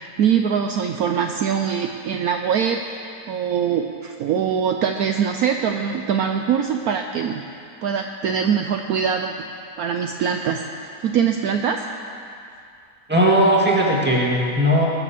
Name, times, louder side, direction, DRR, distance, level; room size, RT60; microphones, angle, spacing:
voice 1, 0.0-2.8 3.3-7.4 7.8-9.3 9.8-11.9, right 7 dB, 70° right, 4 dB, 1.0 m, -23 dB
voice 2, 13.1-14.9, equal, 5° right, -3 dB, 2.0 m, -17 dB
20.5 x 7.0 x 7.1 m, 2.4 s
omnidirectional pair, 1.8 m